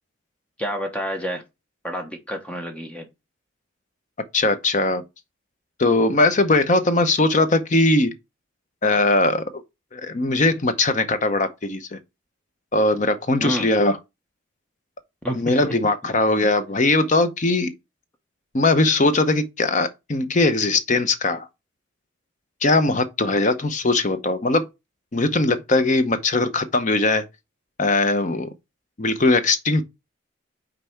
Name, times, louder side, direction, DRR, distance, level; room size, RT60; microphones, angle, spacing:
voice 1, 0.6-1.4 1.8-3.1 13.4-13.7 15.2-15.6, equal, 5° left, 0.9 m, -29 dB
voice 2, 4.3-5.0 5.8-8.1 8.8-9.6 9.9-12.0 12.7-14.0 15.3-17.7 18.5-21.5 22.6-24.7 25.1-27.3 27.8-28.5 29.0-29.8, left 2 dB, 40° left, 0.7 m, -20 dB
5.5 x 4.0 x 4.5 m
head